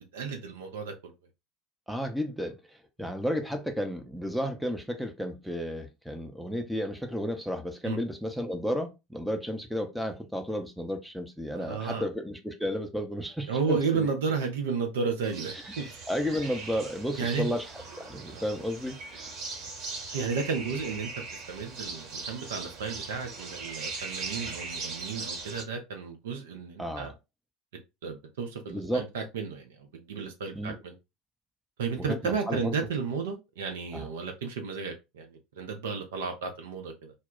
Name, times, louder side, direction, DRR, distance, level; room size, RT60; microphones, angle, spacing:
voice 1, 0.1-1.1 7.8-8.0 11.5-12.1 13.5-15.9 17.2-17.5 18.3-18.4 20.1-21.1 21.5-27.1 28.0-30.9 31.8-37.1, right 5 dB, 65° right, 0.6 m, -33 dB
voice 2, 1.9-2.6 3.0-14.1 15.5-15.6 16.1-17.7 18.0-19.5 26.8-27.2 28.7-29.0 30.5-30.8 32.0-32.7 33.9-34.1, equal, ahead, 0.6 m, -33 dB
sound 1, 15.2-25.6, right 4 dB, 50° right, 1.1 m, -40 dB
2.2 x 2.1 x 3.6 m
figure-of-eight pair, 70°, 0 cm